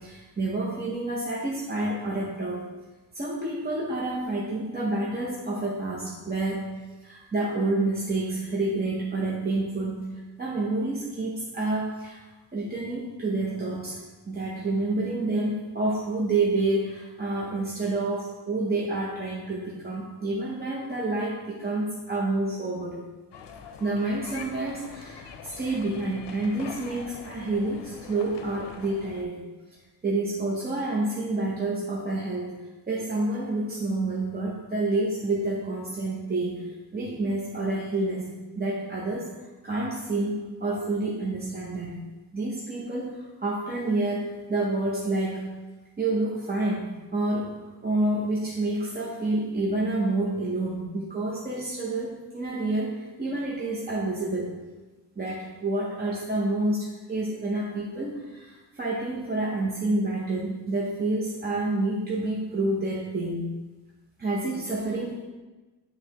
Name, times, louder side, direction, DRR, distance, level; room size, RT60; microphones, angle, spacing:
voice 1, 0.0-2.6 3.1-10.1 10.4-12.3 12.5-23.0 23.8-29.4 30.0-32.5 32.9-36.6 36.9-38.3 38.6-39.3 39.6-42.0 42.3-45.5 46.0-54.6 55.2-63.5 64.2-65.2, right 2 dB, 25° right, -5 dB, 0.6 m, -28 dB
sound 1, 23.3-29.2, left 6 dB, 80° left, 0.6 m, -44 dB
10.0 x 3.4 x 2.8 m, 1.2 s
wide cardioid pair, 180°, 41 cm